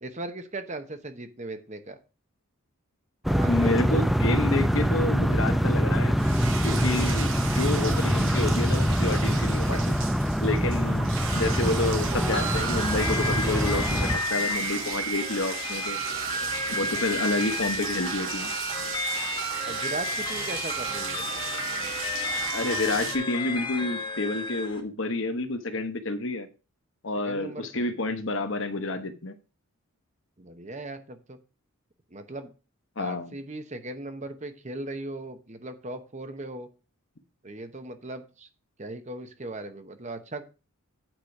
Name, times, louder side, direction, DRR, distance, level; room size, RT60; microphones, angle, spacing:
voice 1, 0.0-2.0 3.3-4.1 19.6-21.3 27.1-27.9 30.4-31.4 32.1-32.5 33.0-36.7 37.4-38.5 38.8-40.4, right 2 dB, 30° right, 0.9 m, -38 dB
sound 1, 3.2-14.2, equal, ahead, 0.5 m, -24 dB
voice 2, 3.5-6.2 6.6-10.0 10.4-16.0 16.7-18.5 22.5-26.5 27.0-29.3 33.0-33.4, left 2 dB, 60° left, 1.1 m, -29 dB
sound 2, 6.2-23.2, right 6 dB, 60° right, 1.5 m, -36 dB
sound 3, 11.3-24.8, left 1 dB, 20° left, 1.2 m, -32 dB
9.0 x 5.0 x 5.9 m
head